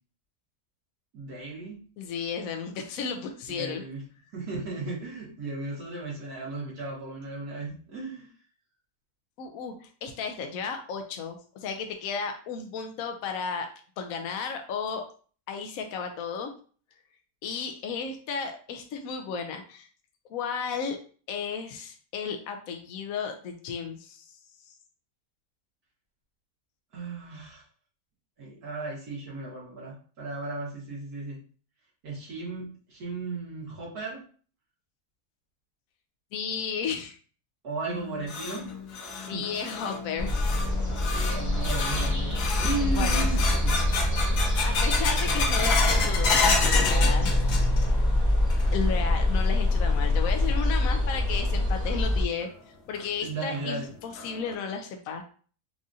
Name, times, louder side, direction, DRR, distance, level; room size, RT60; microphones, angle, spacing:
voice 1, 1.1-1.8 3.6-4.0 4.3-8.3 26.9-27.6 28.4-31.4 32.0-34.2 37.6-38.7 39.2-39.5 41.0-43.8 53.2-53.9, right 3 dB, 75° right, -5 dB, 2.1 m, -35 dB
voice 2, 2.0-3.8 9.4-13.7 14.0-15.0 15.5-16.5 17.4-19.9 20.3-21.0 21.3-24.2 36.3-37.1 39.2-40.6 43.0-43.3 44.6-47.3 48.7-52.5 52.9-55.2, left 6 dB, 70° left, 5 dB, 0.9 m, -33 dB
sound 1, 37.9-48.0 48.3-48.9 49.3-49.4 50.1-50.2 51.8-51.9 52.4-52.5 53.0-53.1 53.5-53.6 54.2-54.5, left 4 dB, 85° left, 1.3 m, -30 dB
sound 2, 40.2-52.2, left 1 dB, 20° left, 0.4 m, -25 dB
4.8 x 2.5 x 2.6 m, 0.42 s
omnidirectional pair, 1.6 m